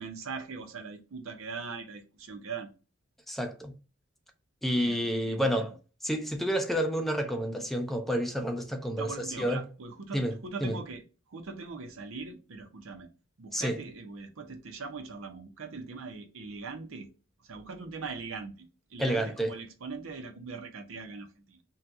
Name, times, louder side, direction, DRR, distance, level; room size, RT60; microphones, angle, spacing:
voice 1, 0.0-2.7 4.8-5.7 9.0-11.0 11.3-13.1 13.4-17.1 17.4-21.6, right 4 dB, 90° right, 0.7 m, -41 dB
voice 2, 3.3-3.8 4.6-5.7 6.0-9.1 9.4-9.7 10.1-10.8 13.5-13.8 19.0-19.5, equal, ahead, 0.4 m, -29 dB
2.8 x 2.3 x 3.5 m
head